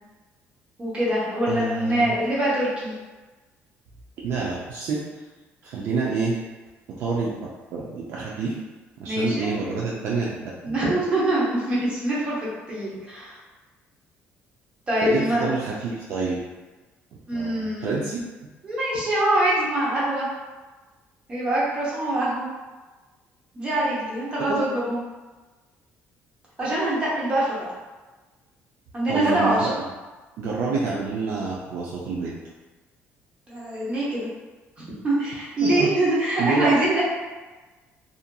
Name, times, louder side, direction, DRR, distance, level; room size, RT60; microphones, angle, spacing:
voice 1, 0.8-2.9 9.0-9.5 10.6-13.4 14.9-15.5 17.3-18.0 18.6-20.3 21.3-22.5 23.5-25.0 26.6-27.6 28.9-29.7 33.5-34.3 35.0-37.0, right 1 dB, 25° right, -7 dB, 0.8 m, -24 dB
voice 2, 1.5-2.1 4.2-5.0 5.6-6.4 6.9-8.5 9.0-10.8 15.0-16.4 17.3-18.3 24.5-24.6 29.1-29.7 30.4-32.3 35.6-35.9 36.4-36.7, right 4 dB, 55° right, -5 dB, 0.4 m, -27 dB
2.7 x 2.4 x 2.2 m, 1.3 s
cardioid pair, 170°, 5 cm